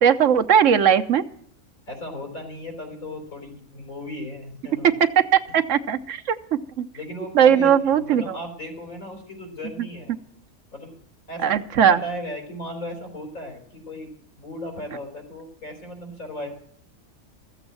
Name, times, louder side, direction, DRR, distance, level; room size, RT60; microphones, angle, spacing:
voice 1, 0.0-1.2 4.8-6.9 7.3-8.4 11.4-12.0, right 8 dB, 65° right, 9 dB, 1.2 m, -19 dB
voice 2, 1.9-4.9 6.9-10.1 10.7-10.9 11.3-11.5 11.9-14.1 14.4-16.5, left 1 dB, 80° left, 1 dB, 4.6 m, -36 dB
14.0 x 8.0 x 7.6 m, 0.63 s
omnidirectional pair, 1.5 m